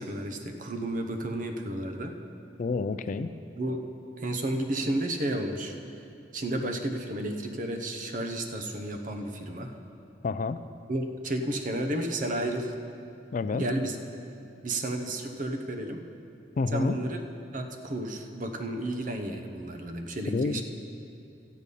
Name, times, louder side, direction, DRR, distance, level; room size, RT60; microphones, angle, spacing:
voice 1, 0.0-2.2 3.5-3.9 4.2-6.0 6.3-9.7 10.9-12.7 13.5-14.0 14.6-16.1 16.7-17.2 17.5-20.6, right 1 dB, 45° right, 5 dB, 0.8 m, -32 dB
voice 2, 2.6-3.3 10.2-10.6 13.3-13.6 16.6-17.0 20.3-20.6, left 4 dB, 45° left, 12 dB, 0.3 m, -29 dB
13.0 x 5.4 x 8.3 m, 2.6 s
head